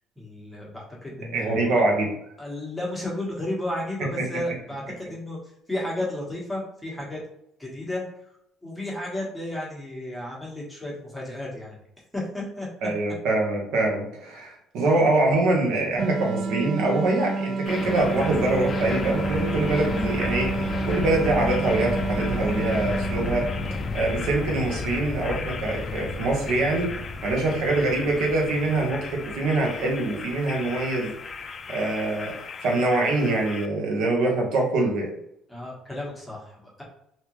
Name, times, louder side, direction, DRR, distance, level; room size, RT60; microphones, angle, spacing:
voice 1, 0.2-1.8 2.4-5.4 5.7-7.2 7.6-8.0 8.6-11.7 12.1-12.7 35.5-36.8, left 1 dB, 5° left, -4 dB, 1.1 m, -33 dB
voice 2, 1.3-2.1 12.8-23.5 23.9-26.9 27.2-31.1 31.7-32.3 32.6-35.1, right 2 dB, 75° right, -1 dB, 1.0 m, -24 dB
sound 1, 16.0-24.1, right 4 dB, 55° right, 0.3 m, -30 dB
sound 2, 17.7-33.7, left 4 dB, 30° left, 0.4 m, -32 dB
3.4 x 2.8 x 3.0 m, 0.76 s
cardioid pair, 125°, 0 cm